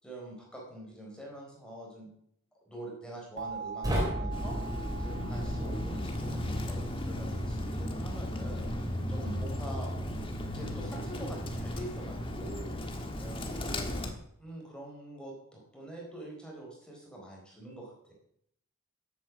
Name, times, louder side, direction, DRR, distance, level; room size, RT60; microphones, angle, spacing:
voice 1, 0.0-2.1 2.7-4.6 5.0-9.9 10.4-12.7 13.2-13.9 14.4-18.1, right 1 dB, 5° left, -2 dB, 4.1 m, -45 dB
sound 1, 3.4-8.1, right 6 dB, 55° right, 1.1 m, -44 dB
sound 2, 3.8-6.9, equal, 15° right, 4.0 m, -35 dB
Bird, 4.3-14.1, left 1 dB, 25° left, 1.5 m, -35 dB
13.5 x 8.8 x 7.3 m, 0.71 s
head